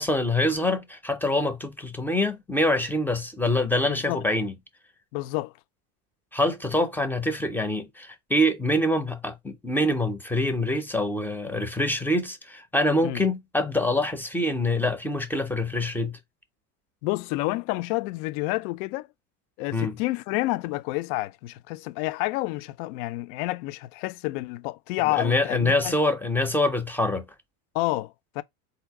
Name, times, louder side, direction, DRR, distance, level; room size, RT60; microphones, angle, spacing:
voice 1, 0.0-4.5 6.3-16.2 19.7-20.0 25.1-27.2, left 1 dB, 5° left, 0.4 m, -25 dB
voice 2, 3.9-4.2 5.1-5.5 13.0-13.2 17.0-19.1 19.6-26.0 27.7-28.4, left 19 dB, 65° left, 0.5 m, -29 dB
3.9 x 2.8 x 4.5 m
supercardioid pair, 140°, 45 cm